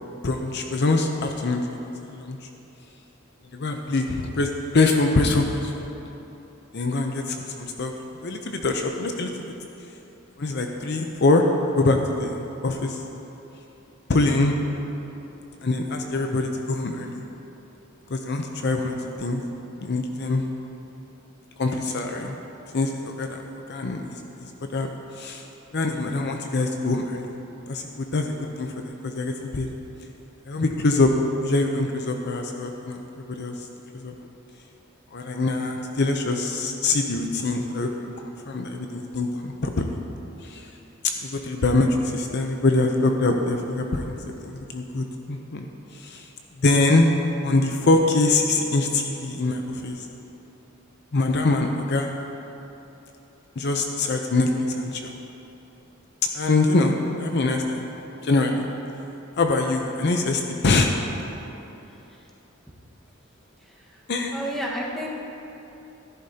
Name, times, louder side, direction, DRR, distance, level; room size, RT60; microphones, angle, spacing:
voice 1, 0.2-1.6 2.1-2.4 3.5-5.9 6.7-7.9 8.2-9.3 10.4-11.4 11.7-13.0 14.1-14.6 15.6-17.2 18.1-19.4 19.8-20.4 21.6-22.4 22.7-23.4 23.7-24.2 24.7-24.9 25.2-25.5 25.7-27.3 27.7-29.7 30.5-31.1 31.4-33.0 33.4-33.5 33.9-34.1 35.1-37.9 38.5-39.9 40.4-40.7 41.2-44.2 44.4-45.7 45.9-46.3 46.6-47.1 47.4-50.1 51.1-52.1 53.6-54.5 54.7-55.1 56.3-57.9 58.2-58.7 59.4-60.9 64.1-64.4, left 2 dB, 55° left, 3 dB, 0.6 m, -24 dB
voice 2, 63.6-64.0 64.3-65.1, equal, ahead, -4 dB, 1.4 m, -32 dB
14.0 x 11.5 x 2.8 m, 3.0 s
head